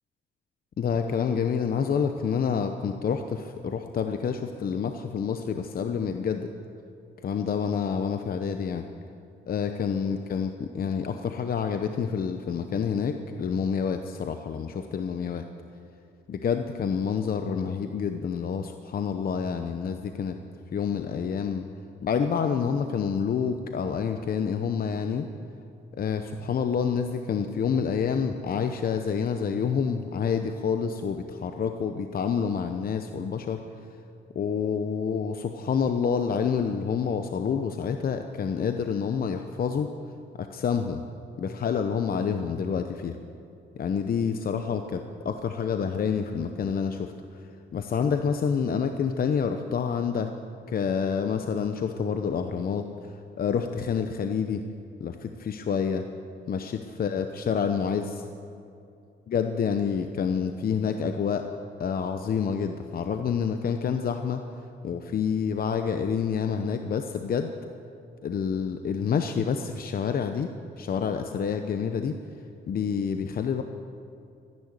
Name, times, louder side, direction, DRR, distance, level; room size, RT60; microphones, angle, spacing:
voice 1, 0.8-6.5 7.2-8.8 9.5-15.4 16.3-20.4 20.7-21.7 22.0-25.3 26.0-33.6 34.3-39.9 40.4-41.0 41.4-43.2 43.8-47.1 47.7-50.3 50.7-52.8 53.4-54.6 55.0-56.0 56.5-58.2 59.3-61.5 61.8-64.4 64.8-67.5 68.2-70.5 70.8-72.2 72.7-73.6, left 6 dB, 50° left, 7 dB, 0.8 m, -28 dB
14.5 x 10.5 x 8.3 m, 2.6 s
cardioid pair, 90°, 20 cm